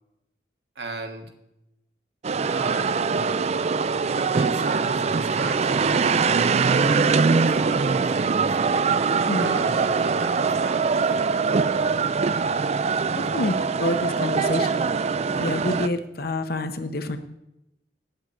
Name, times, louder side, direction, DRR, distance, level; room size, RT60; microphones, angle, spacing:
voice 1, 0.7-1.3 2.5-3.0 4.0-8.9 9.3-11.0 11.7-12.4, right 2 dB, 70° right, 5 dB, 1.4 m, -36 dB
sound 1, 2.2-15.9, right 5 dB, 40° right, 0.4 m, -22 dB
voice 2, 9.3-9.6 13.3-14.7 15.3-17.2, left 1 dB, 60° left, 9 dB, 0.9 m, -27 dB
8.8 x 8.1 x 8.0 m, 0.90 s
head